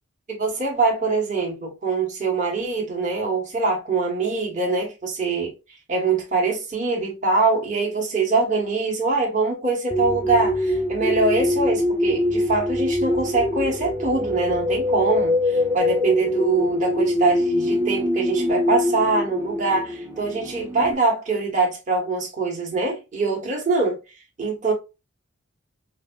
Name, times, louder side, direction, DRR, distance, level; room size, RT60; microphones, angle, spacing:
voice 1, 0.3-5.5 5.9-24.0 24.4-24.7, right 3 dB, 35° right, 1.2 m, -23 dB
sound 1, 9.9-20.9, left 1 dB, 10° right, 0.4 m, -24 dB
4.9 x 2.3 x 2.5 m
head